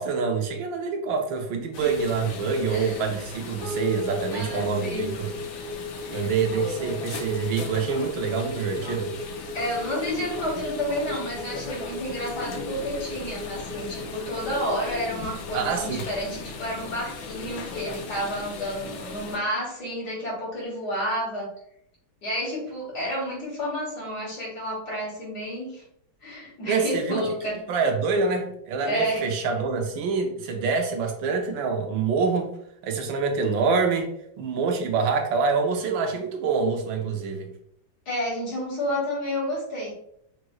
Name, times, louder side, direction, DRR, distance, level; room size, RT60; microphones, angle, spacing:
voice 1, 0.0-5.3 6.1-9.1 15.5-16.0 26.6-27.3 27.7-32.5 32.8-37.5, right 5 dB, 80° right, 3 dB, 1.5 m, -26 dB
sound 1, 1.7-19.4, left 4 dB, 85° left, 1.5 m, -38 dB
voice 2, 2.7-3.0 4.3-5.1 6.0-6.3 9.5-21.5 22.2-25.8 26.2-27.6 28.9-29.3 38.1-39.9, equal, 55° left, -6 dB, 2.3 m, -30 dB
sound 2, 3.6-16.1, left 2 dB, 35° right, 1.9 m, -37 dB
5.0 x 3.1 x 2.3 m, 0.71 s
omnidirectional pair, 2.1 m